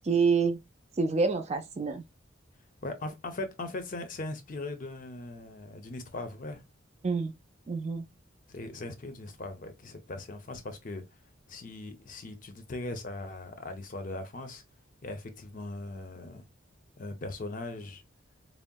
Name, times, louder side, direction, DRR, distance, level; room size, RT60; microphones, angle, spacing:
voice 1, 0.0-0.6 1.0-2.0 7.0-7.3 7.7-8.0, right 4 dB, 35° right, 0.4 m, -27 dB
voice 2, 2.8-6.6 8.5-11.0 11.5-14.6 15.0-16.5 17.0-18.0, left 2 dB, 45° left, 0.5 m, -39 dB
3.7 x 2.0 x 2.2 m
head